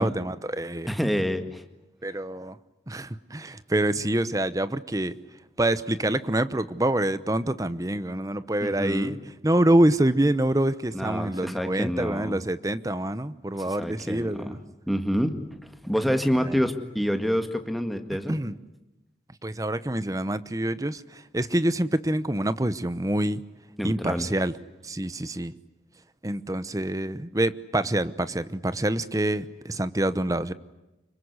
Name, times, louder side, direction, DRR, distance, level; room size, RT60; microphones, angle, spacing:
voice 1, 0.0-0.9 2.0-2.6 2.9-5.2 5.6-9.2 9.4-14.6 18.3-18.5 19.4-23.4 23.8-24.5 24.8-25.5 26.2-30.5, right 1 dB, 20° right, 15 dB, 0.9 m, -26 dB
voice 2, 0.9-1.6 8.6-9.2 10.9-12.4 13.7-14.6 14.9-18.4 23.8-24.3, equal, ahead, 6 dB, 1.9 m, -28 dB
26.5 x 23.5 x 9.7 m, 0.98 s
head